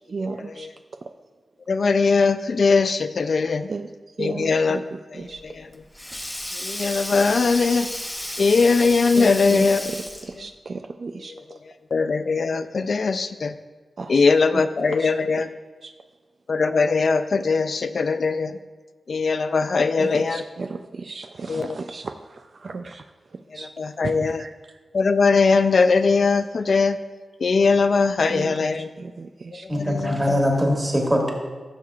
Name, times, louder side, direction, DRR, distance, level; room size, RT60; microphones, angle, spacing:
voice 1, 0.1-0.7 1.0-1.1 3.7-3.9 4.2-5.4 9.2-11.3 14.0-14.3 14.5-14.6 14.9-15.1 15.8-15.9 20.0-23.0 23.5-23.7 24.0-24.7 28.2-28.6 29.0-29.9, right 4 dB, 50° right, 6 dB, 0.3 m, -34 dB
voice 2, 1.7-3.7 4.2-4.8 5.4-5.5 6.6-7.9 8.4-9.8 11.9-13.5 14.1-15.5 16.5-18.5 19.1-20.4 21.5-21.8 23.8-24.4 24.9-27.0 27.4-28.9 29.8-30.2, left 4 dB, 55° left, 10 dB, 0.3 m, -20 dB
Sink (filling or washing), 5.3-10.5, left 1 dB, 10° left, 0.8 m, -33 dB
voice 3, 29.7-31.3, equal, 20° right, -1 dB, 1.7 m, -22 dB
15.0 x 7.2 x 2.4 m, 1.4 s
wide cardioid pair, 135°, 0 cm